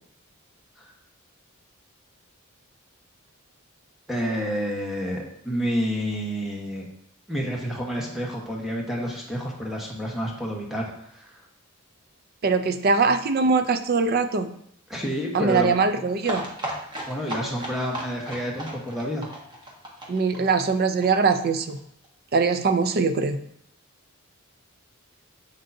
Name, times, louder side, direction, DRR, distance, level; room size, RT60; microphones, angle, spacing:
voice 1, 4.1-6.9 7.3-11.4 14.9-15.7 17.1-19.3, equal, ahead, -2 dB, 1.1 m, -29 dB
voice 2, 12.4-14.5 15.3-16.4 20.1-21.8 22.3-23.4, right 4 dB, 45° right, 10 dB, 0.4 m, -22 dB
sound 1, 16.2-21.8 22.0-22.1 22.4-22.5 22.7-22.8, right 1 dB, 20° right, 1.1 m, -35 dB
6.9 x 6.3 x 2.7 m, 0.71 s
head